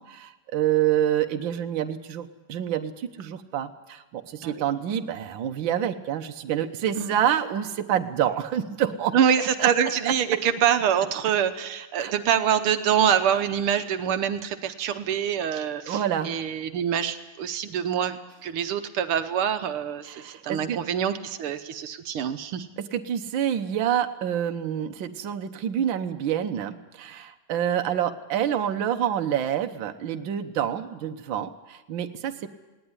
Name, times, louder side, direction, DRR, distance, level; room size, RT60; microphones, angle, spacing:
voice 1, 0.0-9.1 9.6-9.7 12.0-12.1 15.9-16.3 20.0-20.8 22.8-32.5, right 10 dB, 65° right, 6 dB, 1.7 m, -27 dB
voice 2, 9.1-22.7, right 8 dB, 80° right, 9 dB, 1.8 m, -25 dB
19.0 x 18.0 x 9.9 m, 1.1 s
omnidirectional pair, 2.4 m